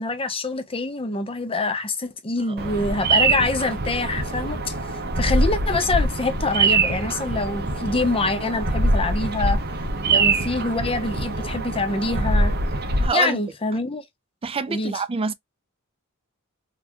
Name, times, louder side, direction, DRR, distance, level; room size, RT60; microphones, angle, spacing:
voice 1, 0.0-4.7 5.2-9.6 10.1-12.5 13.1-14.0 14.7-15.0, left 3 dB, 25° left, 0.7 m, -25 dB
voice 2, 2.5-2.9 7.8-8.0 9.9-10.3 13.0-13.4 14.4-15.3, right 4 dB, 25° right, 0.4 m, -28 dB
Bird vocalization bird call bird song, 2.6-13.1, right 2 dB, 45° right, 0.9 m, -23 dB
4.1 x 2.2 x 2.9 m
head